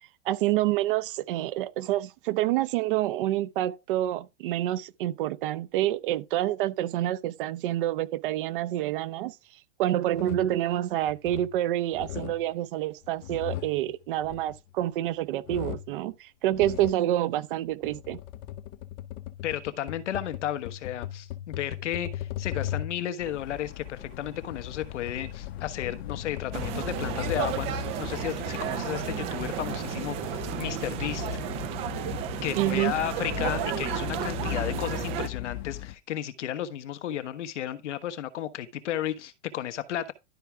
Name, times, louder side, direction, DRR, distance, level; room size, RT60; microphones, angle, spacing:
voice 1, 0.2-9.3 9.8-18.2 32.6-32.9, right 14 dB, 50° right, 0.7 m, -27 dB
sound 1, 10.1-10.6 11.0-11.6 11.9-12.5 13.0-15.1 15.4-16.0 16.5-17.1 17.7-23.1 24.1-27.8, left 12 dB, 30° left, 0.6 m, -38 dB
voice 2, 19.4-31.3 32.4-40.1, left 11 dB, 80° left, 1.3 m, -33 dB
sound 2, 23.2-35.9, left 14 dB, 60° left, 1.1 m, -38 dB
sound 3, 26.5-35.3, right 10 dB, 20° right, 0.4 m, -33 dB
12.5 x 4.8 x 3.4 m
supercardioid pair, 150°, 35 cm